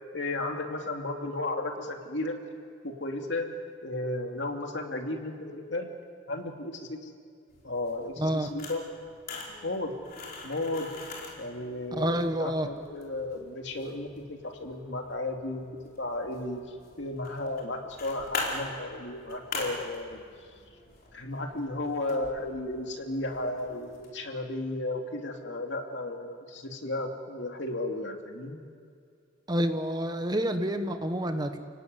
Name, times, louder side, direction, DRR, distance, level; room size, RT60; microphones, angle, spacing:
voice 1, 0.1-2.4 2.8-3.5 3.8-5.9 6.3-7.1 7.6-8.8 9.5-9.9 10.4-10.9 11.4-15.7 16.0-16.6 17.0-20.2 21.1-28.6, left 2 dB, 65° left, 3 dB, 2.7 m, -34 dB
sound 1, 7.5-24.1, left 3 dB, 50° left, 4.7 m, -43 dB
voice 2, 8.2-8.5 12.0-12.7 29.5-31.6, equal, 20° right, 7 dB, 1.3 m, -28 dB
30.0 x 17.5 x 9.5 m, 2.3 s
head